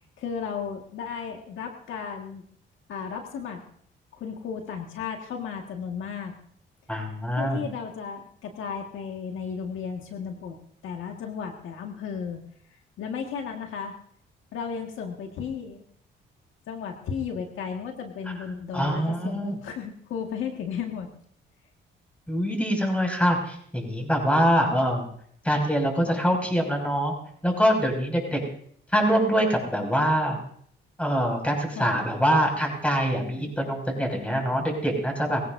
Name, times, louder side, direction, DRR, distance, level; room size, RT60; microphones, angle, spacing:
voice 1, 0.2-2.4 2.9-3.6 4.1-6.3 7.3-10.6 10.8-12.4 13.0-13.9 14.5-15.8 16.7-21.1 31.8-31.9, left 6 dB, 80° left, 3 dB, 1.8 m, -34 dB
voice 2, 6.9-7.6 18.7-19.5 22.3-25.1 25.4-27.1 27.4-28.4 28.9-30.4 31.0-35.4, equal, 5° left, 2 dB, 6.3 m, -24 dB
23.0 x 16.5 x 2.7 m, 0.62 s
cardioid pair, 90°, 20 cm